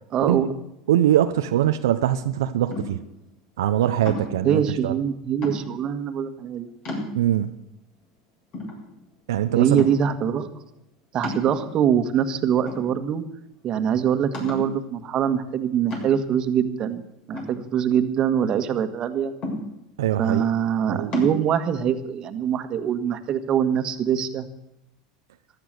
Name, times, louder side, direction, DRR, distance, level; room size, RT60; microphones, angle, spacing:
voice 1, 0.1-0.5 4.4-6.7 9.6-10.5 11.1-13.2 13.6-17.0 17.3-19.3 20.2-24.5, right 8 dB, 40° right, 8 dB, 1.6 m, -23 dB
voice 2, 0.9-3.0 3.6-4.9 7.1-7.5 9.3-9.9 20.0-20.4 20.9-21.1, right 12 dB, 80° right, 8 dB, 0.7 m, -22 dB
sound 1, 2.7-3.1 4.1-4.5 5.4-5.9 6.4-6.5 6.9-7.5 8.0-8.1 8.5-9.3 9.8-10.2 11.2-12.0 12.7-13.3 13.6-13.7 14.3-14.8 15.9-16.4 17.3-18.2 19.4-20.0 21.1-21.4, left 1 dB, 45° left, 7.6 m, -33 dB
14.5 x 12.5 x 6.8 m, 0.85 s
hypercardioid pair, 95°, 2 cm